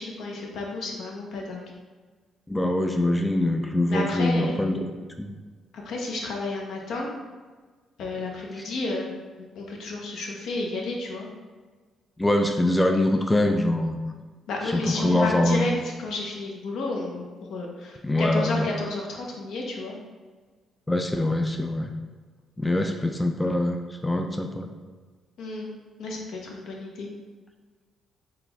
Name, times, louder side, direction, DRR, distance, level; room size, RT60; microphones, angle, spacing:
voice 1, 0.0-1.6 3.9-4.6 5.7-7.1 8.0-9.1 9.4-11.3 14.5-20.0 25.4-25.7 26.0-27.1, left 2 dB, 75° left, -1 dB, 0.8 m, -31 dB
voice 2, 2.5-4.8 5.2-5.3 12.2-14.1 14.7-15.7 18.0-18.7 20.9-21.9 22.6-23.8 24.0-24.7, left 1 dB, 10° left, 4 dB, 0.3 m, -23 dB
3.9 x 2.3 x 4.0 m, 1.4 s
cardioid pair, 90°, 0 cm